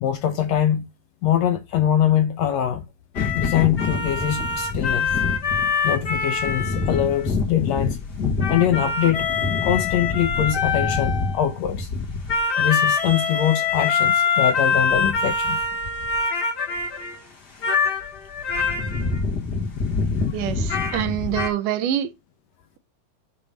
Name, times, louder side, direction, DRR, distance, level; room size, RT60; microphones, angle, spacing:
voice 1, 0.0-0.9 1.2-2.9 3.3-5.1 5.8-8.0 8.5-9.3 9.6-11.9 12.6-15.6, left 10 dB, 75° left, 1.6 m, -23 dB
sound 1, 3.1-17.2 17.6-21.5, left 5 dB, 40° left, 1.7 m, -24 dB
voice 2, 20.3-22.1, right 11 dB, 85° right, 2.4 m, -25 dB
8.7 x 3.1 x 5.2 m
omnidirectional pair, 3.6 m